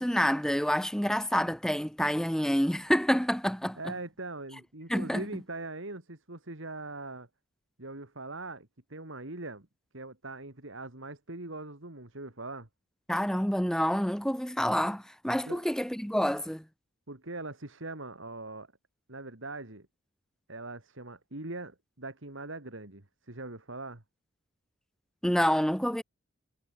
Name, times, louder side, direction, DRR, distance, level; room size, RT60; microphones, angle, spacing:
voice 1, 0.0-3.8 4.9-5.2 13.1-16.6 25.2-26.0, equal, 5° left, 1.1 m, -28 dB
voice 2, 3.8-7.3 7.8-9.7 9.9-12.7 15.5-15.6 17.1-18.7 19.1-19.9 20.5-24.0, right 2 dB, 60° right, 2.4 m, -41 dB
head